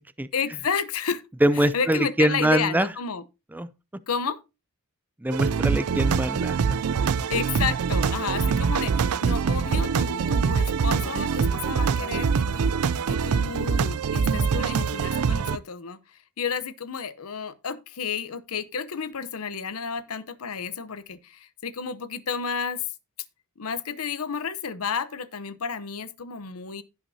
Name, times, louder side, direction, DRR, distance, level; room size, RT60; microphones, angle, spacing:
voice 1, 0.3-1.2 1.6-3.2 4.1-4.4 7.3-12.8 13.1-22.9 23.6-26.8, left 6 dB, 75° left, 0.8 m, -31 dB
voice 2, 1.4-2.9 3.5-3.7 5.2-6.6, right 1 dB, 10° right, 0.4 m, -23 dB
sound 1, 5.3-15.6, right 6 dB, 80° right, 0.4 m, -24 dB
16.0 x 5.7 x 2.7 m
head